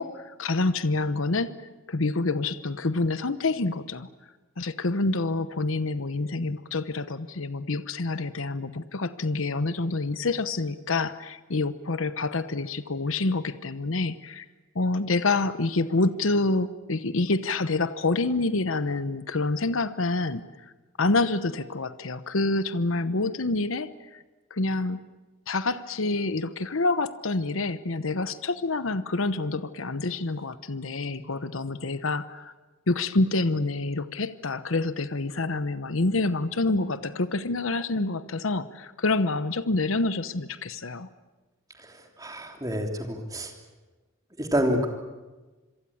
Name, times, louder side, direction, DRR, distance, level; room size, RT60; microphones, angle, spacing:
voice 1, 0.0-1.5 1.9-4.1 4.6-14.5 14.7-20.5 21.0-24.2 24.5-25.0 25.5-32.5 32.9-41.1, left 3 dB, 75° left, 13 dB, 1.0 m, -27 dB
voice 2, 42.2-43.5 44.4-44.9, equal, 15° right, 3 dB, 3.2 m, -27 dB
27.0 x 23.0 x 8.6 m, 1.2 s
head